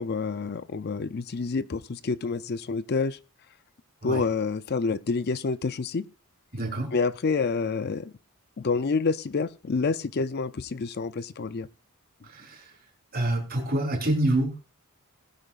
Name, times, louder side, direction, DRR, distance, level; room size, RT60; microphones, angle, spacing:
voice 1, 0.0-3.2 4.0-6.0 6.9-8.1 8.6-11.7, left 4 dB, 50° left, 15 dB, 0.5 m, -28 dB
voice 2, 6.5-6.9 12.3-12.6 13.1-14.6, right 1 dB, 45° right, 1 dB, 4.0 m, -26 dB
19.5 x 10.0 x 2.5 m, 0.30 s
head